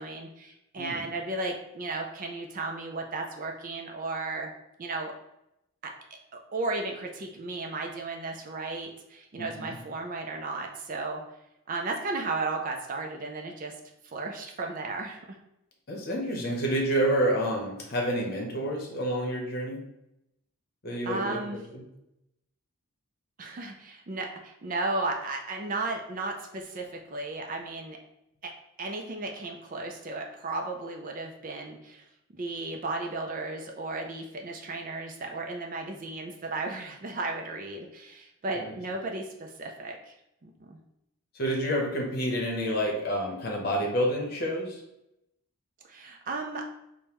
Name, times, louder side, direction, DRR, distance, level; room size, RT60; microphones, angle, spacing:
voice 1, 0.0-4.5 4.8-5.1 5.8-5.9 6.3-11.2 11.7-13.7 14.1-15.4 21.1-21.6 23.4-28.0 28.4-28.5 28.8-32.1 32.4-40.1 40.4-40.8 45.9-46.6, right 3 dB, 35° right, 2 dB, 0.4 m, -34 dB
voice 2, 9.4-9.8 15.9-19.8 20.8-21.4 21.7-21.8 38.5-38.8 41.3-44.8, equal, 45° left, 0 dB, 0.8 m, -29 dB
5.1 x 2.1 x 2.9 m, 0.86 s
head